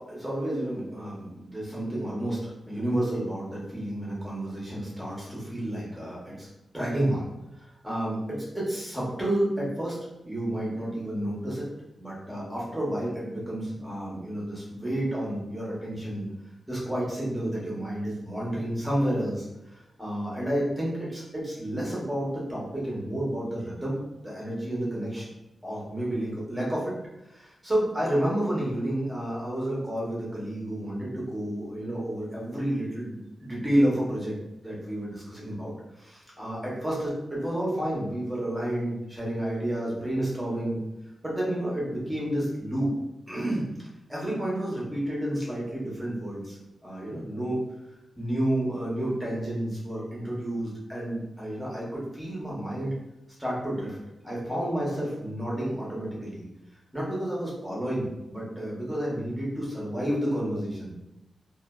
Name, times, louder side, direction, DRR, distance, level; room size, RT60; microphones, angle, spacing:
voice 1, 0.0-6.5 6.7-7.3 7.6-10.0 10.2-11.7 12.0-16.2 16.7-24.0 24.2-25.3 25.6-26.9 27.3-34.4 34.6-40.8 41.2-42.9 43.3-43.6 44.1-46.6 46.8-47.6 48.2-52.9 53.4-54.0 54.2-56.5 56.9-61.0, right 1 dB, 5° right, -6 dB, 0.9 m, -30 dB
2.5 x 2.2 x 2.2 m, 0.93 s
wide cardioid pair, 120°, 0 cm